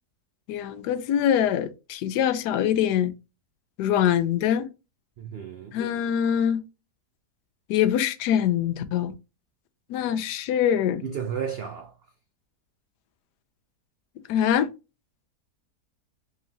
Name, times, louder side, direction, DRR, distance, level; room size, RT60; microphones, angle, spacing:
voice 1, 0.5-3.1 3.8-4.7 5.7-6.6 7.7-9.1 9.9-11.0 14.3-14.7, left 9 dB, 85° left, 1.1 m, -24 dB
voice 2, 5.2-5.8 11.0-11.9, right 7 dB, 85° right, 0.5 m, -33 dB
3.7 x 3.1 x 2.8 m
omnidirectional pair, 1.7 m